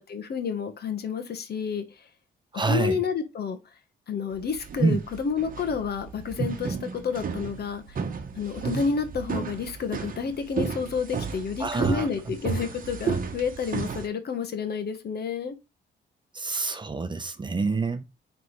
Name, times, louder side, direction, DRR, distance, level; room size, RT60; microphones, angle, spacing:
voice 1, 0.1-2.1 2.7-3.6 4.1-8.0 8.3-15.6, left 6 dB, 55° left, 1.2 m, -30 dB
voice 2, 2.5-3.0 4.8-5.0 11.6-12.1 16.3-18.0, right 4 dB, 25° right, 0.8 m, -26 dB
sound 1, 4.4-14.1, right 6 dB, 45° right, 1.1 m, -33 dB
9.3 x 3.5 x 3.2 m
cardioid pair, 90°, 20 cm